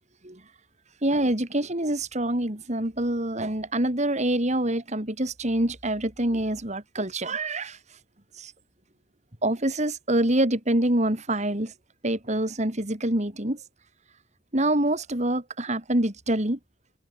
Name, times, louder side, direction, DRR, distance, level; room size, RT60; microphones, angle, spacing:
voice 1, 1.0-7.8 8.4-8.5 9.4-11.7 12.0-13.6 14.5-16.6, right 1 dB, 35° right, 3.1 m, -26 dB
head